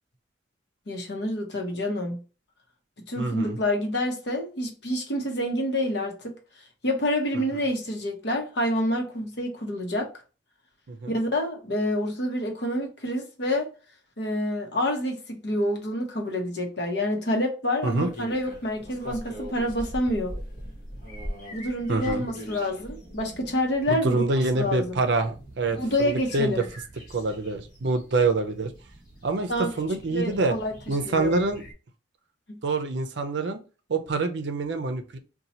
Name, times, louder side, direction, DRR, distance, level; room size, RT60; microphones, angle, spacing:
voice 1, 0.9-2.2 3.1-6.4 6.8-10.1 11.1-13.7 14.2-20.3 21.5-24.2 24.5-25.0 25.7-26.7 29.5-29.7 30.1-30.7 31.0-31.4 32.5-32.6, left 1 dB, 65° left, 0.9 m, -27 dB
voice 2, 3.2-3.6 7.3-7.4 10.9-11.1 17.8-18.1 21.9-22.3 23.9-26.6 27.1-28.7 29.2-29.5 29.8-30.5 30.9-31.6 32.6-33.6 33.9-35.2, right 3 dB, 70° right, 0.5 m, -26 dB
sound 1, 17.8-31.7, equal, 45° left, 1.2 m, -42 dB
2.8 x 2.3 x 4.1 m
head